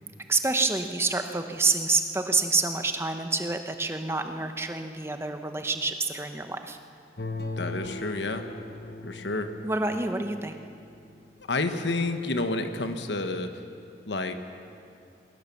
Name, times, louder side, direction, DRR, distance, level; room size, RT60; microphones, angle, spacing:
voice 1, 0.3-6.8 9.6-10.6, right 3 dB, 15° right, 7 dB, 0.9 m, -27 dB
sound 1, 7.2-11.2 11.7-11.8, left 2 dB, 65° left, 1.2 m, -39 dB
voice 2, 7.6-8.5 9.0-9.5 11.5-13.5 14.1-14.3, left 2 dB, 90° left, 8 dB, 1.3 m, -29 dB
21.0 x 17.5 x 7.1 m, 2.5 s
head